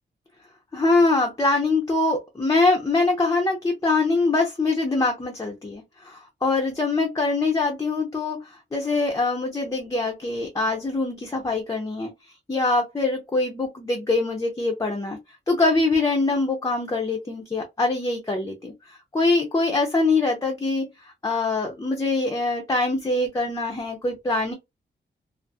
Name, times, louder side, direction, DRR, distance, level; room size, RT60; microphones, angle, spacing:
voice 1, 0.7-12.1 12.5-15.2 15.5-24.5, left 3 dB, 20° left, 0.5 m, -23 dB
2.7 x 2.4 x 2.2 m
wide cardioid pair, 175°, 19 cm